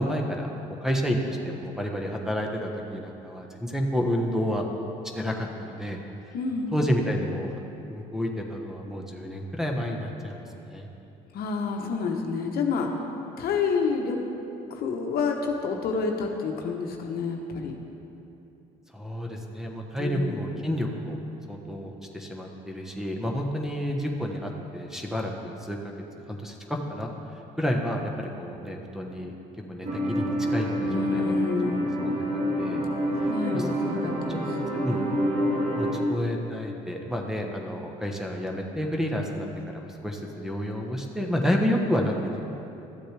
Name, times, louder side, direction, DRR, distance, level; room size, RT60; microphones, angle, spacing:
voice 1, 0.0-4.6 5.1-6.0 6.7-7.5 7.9-10.9 18.9-21.2 21.5-25.9 26.3-27.1 27.6-29.3 29.7-31.3 31.7-32.1 32.6-32.9 33.5-33.7 34.0-34.4 34.7-35.0 35.7-42.4, equal, 5° right, 1 dB, 1.1 m, -30 dB
voice 2, 6.3-6.8 11.3-12.9 13.4-14.2 14.7-17.7 20.0-20.4 30.8-31.9 33.2-34.4 34.9-35.3, left 5 dB, 65° left, 2 dB, 1.0 m, -29 dB
sound 1, 29.8-36.0, equal, 50° right, 1.6 m, -27 dB
13.0 x 7.7 x 3.4 m, 2.9 s
supercardioid pair, 75°, 17 cm